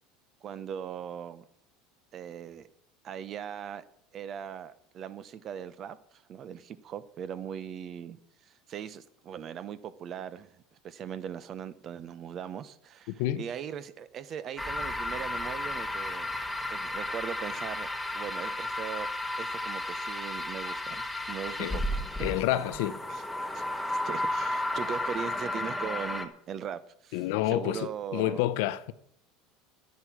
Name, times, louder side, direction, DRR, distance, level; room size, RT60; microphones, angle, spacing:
voice 1, 0.4-1.4 2.1-2.7 3.0-3.8 4.1-16.3 16.7-19.1 19.4-22.8 23.1-23.2 23.5-28.4, right 8 dB, 40° right, 1.0 m, -40 dB
sound 1, 14.6-26.3, left 1 dB, 5° left, 1.3 m, -33 dB
voice 2, 22.2-23.0 27.1-28.9, left 14 dB, 75° left, 0.9 m, -29 dB
12.0 x 9.7 x 6.2 m
supercardioid pair, 135°, 0 cm